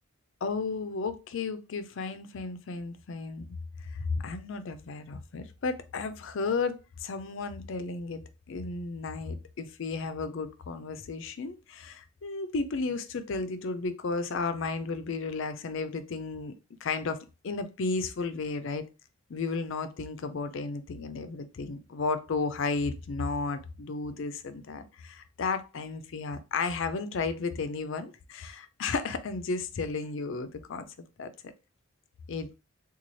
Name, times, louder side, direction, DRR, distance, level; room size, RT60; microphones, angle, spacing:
voice 1, 0.4-16.5 16.8-18.8 19.3-30.9 31.2-31.5 32.3-32.6, left 4 dB, 65° left, 0.4 m, -33 dB
4.0 x 2.3 x 3.1 m
head